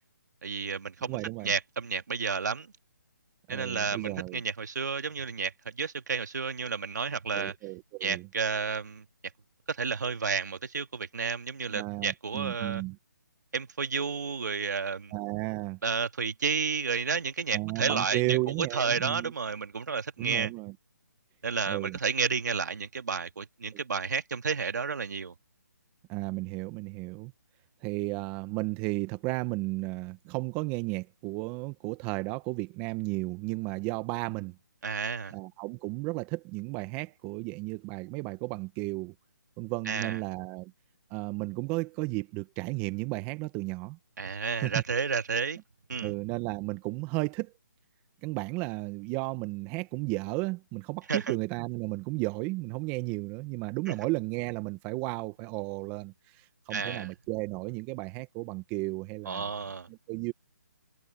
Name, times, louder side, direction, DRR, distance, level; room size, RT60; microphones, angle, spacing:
voice 1, 0.4-2.7 3.5-7.5 8.0-9.0 9.7-12.8 13.5-15.1 15.8-20.5 21.4-25.3 34.8-35.3 39.9-40.2 44.2-45.6 45.9-46.1 51.1-51.3 53.9-54.0 56.7-57.1 59.3-59.9, right 5 dB, 70° right, 2.6 m, -31 dB
voice 2, 1.0-1.5 3.5-4.4 7.3-8.3 11.7-13.0 15.1-15.8 17.5-19.3 20.2-20.7 21.7-22.0 23.7-23.8 26.1-27.3 27.8-34.6 35.3-39.1 39.6-40.7 41.1-44.0 44.6-44.8 46.0-47.5 48.2-59.5 59.9-60.3, right 24 dB, 20° right, 1.3 m, -34 dB
hypercardioid pair, 155°, 10 cm